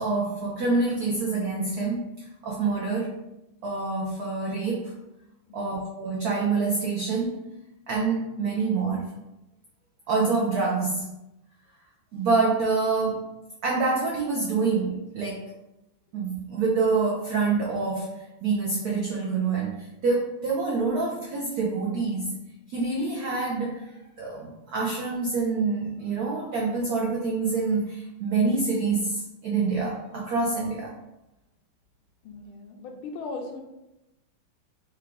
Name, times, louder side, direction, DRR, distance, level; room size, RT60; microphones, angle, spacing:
voice 1, 0.0-2.1 2.4-3.1 3.6-4.9 5.5-7.4 7.9-9.1 10.1-11.1 12.1-13.3 13.6-15.5 16.1-18.1 18.4-19.8 20.0-22.3 22.7-30.9, right 4 dB, 80° right, -2 dB, 0.8 m, -26 dB
voice 2, 5.5-5.8 32.2-33.6, left 3 dB, 75° left, 3 dB, 1.5 m, -38 dB
4.8 x 2.4 x 3.5 m, 0.92 s
omnidirectional pair, 2.4 m